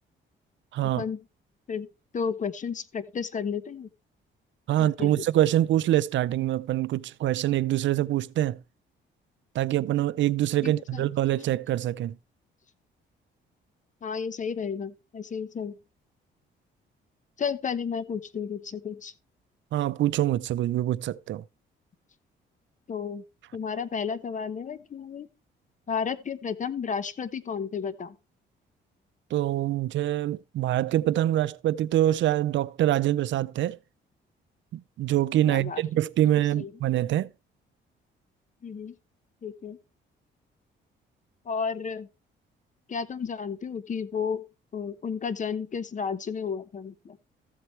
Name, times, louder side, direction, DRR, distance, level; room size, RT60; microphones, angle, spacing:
voice 1, 0.7-1.0 4.7-8.6 9.5-12.2 19.7-21.4 29.3-33.8 34.7-37.3, right 13 dB, 70° right, 0.5 m, -25 dB
voice 2, 2.1-3.9 5.0-5.2 10.6-11.0 14.0-15.7 17.4-19.1 22.9-23.2 23.5-25.3 25.9-28.2 35.5-35.8 36.5-36.7 38.6-38.9 39.4-39.8 41.5-42.1 42.9-44.5 44.7-47.2, left 6 dB, 40° left, 1.0 m, -32 dB
14.5 x 7.8 x 3.2 m
cardioid pair, 90°, 20 cm